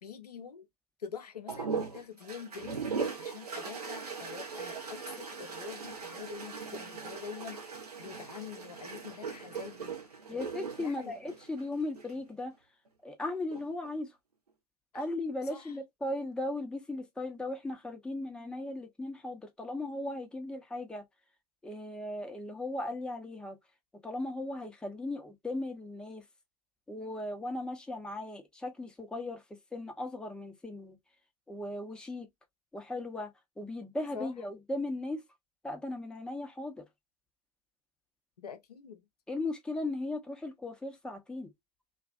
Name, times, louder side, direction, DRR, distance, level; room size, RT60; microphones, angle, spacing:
voice 1, 0.0-0.7 1.0-2.8 3.2-10.0 10.3-10.4 10.8-11.1 14.9-15.1 15.5-15.7 34.1-34.3 38.4-39.0, left 7 dB, 85° left, 0.5 m, -45 dB
sound 1, 1.5-12.2 13.3-13.9, right 5 dB, 85° right, 0.6 m, -39 dB
voice 2, 10.3-12.5 13.0-14.2 14.9-21.0 21.6-23.6 24.0-26.2 26.9-29.4 29.7-31.0 31.5-32.3 32.7-33.3 33.6-35.2 35.6-36.9 39.3-41.5, left 2 dB, 5° left, 0.6 m, -37 dB
2.4 x 2.2 x 2.3 m
figure-of-eight pair, 85°, 20 cm